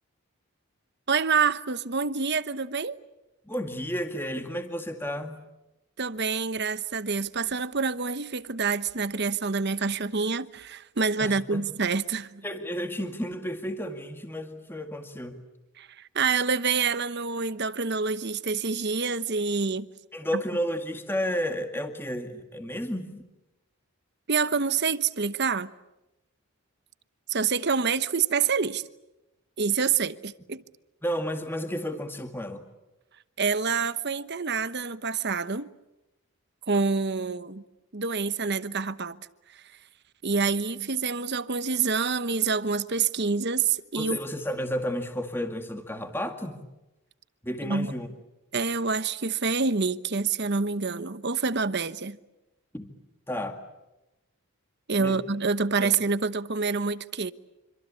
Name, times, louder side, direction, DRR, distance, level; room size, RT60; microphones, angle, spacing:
voice 1, 1.1-3.0 6.0-12.4 15.8-19.9 20.3-20.4 24.3-25.7 27.3-28.8 29.6-30.6 33.4-35.7 36.7-37.6 37.9-39.3 39.5-39.6 40.2-44.2 47.6-47.9 48.5-52.2 54.9-57.3, right 5 dB, 50° right, 1.0 m, -27 dB
voice 2, 3.5-5.4 11.2-11.6 12.4-15.4 20.1-23.2 31.0-32.6 44.0-46.7 47.4-48.1 52.7-52.9 53.3-53.6 55.0-55.2 55.8-55.9, equal, 10° left, 2.1 m, -32 dB
27.0 x 25.5 x 8.5 m
head